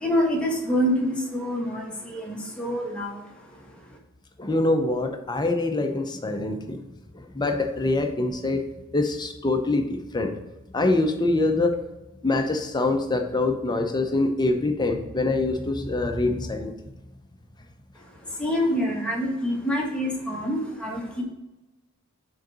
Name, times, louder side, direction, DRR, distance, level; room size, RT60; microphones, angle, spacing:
voice 1, 0.0-3.2 18.4-21.2, equal, 5° left, -3 dB, 1.5 m, -26 dB
voice 2, 4.4-6.8 7.1-8.6 8.9-10.3 10.7-11.7 12.2-16.7, left 2 dB, 20° left, 5 dB, 0.7 m, -24 dB
6.3 x 3.9 x 4.9 m, 1.0 s
head